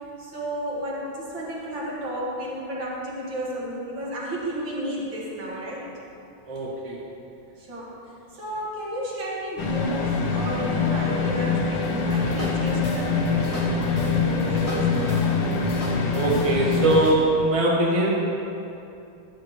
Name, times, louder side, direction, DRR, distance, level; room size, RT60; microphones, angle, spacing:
voice 1, 0.2-5.9 7.6-7.9 8.3-15.4, equal, 70° right, -5 dB, 2.6 m, -32 dB
voice 2, 6.5-7.0 16.1-18.1, right 1 dB, 20° right, -4 dB, 1.2 m, -21 dB
sound 1, 9.6-17.1, left 4 dB, 85° left, 1.7 m, -24 dB
sound 2, 11.8-17.2, left 2 dB, 25° left, 0.7 m, -36 dB
13.5 x 8.8 x 3.1 m, 2.7 s
omnidirectional pair, 2.2 m